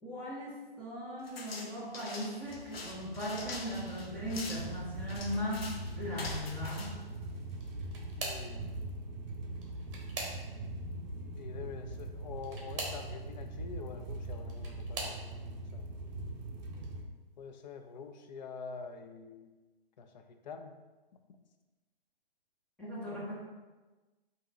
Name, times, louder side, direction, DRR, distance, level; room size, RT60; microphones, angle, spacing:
voice 1, 0.0-5.7 6.0-7.0 22.8-23.3, equal, 5° left, -7 dB, 0.7 m, -38 dB
sound 1, 1.2-7.8, left 2 dB, 85° left, 0.8 m, -44 dB
sound 2, 2.5-17.0, right 2 dB, 45° right, 0.6 m, -42 dB
sound 3, 7.5-8.6 9.5-10.8 12.4-13.1 14.1-15.2 16.0-16.3 16.7-16.9 18.2-18.3, right 2 dB, 30° right, 1.0 m, -42 dB
voice 2, 8.2-8.9 11.4-16.4 17.4-19.5 20.0-20.7, left 5 dB, 50° left, 6 dB, 0.5 m, -46 dB
3.7 x 2.7 x 4.1 m, 1.2 s
hypercardioid pair, 135°, 29 cm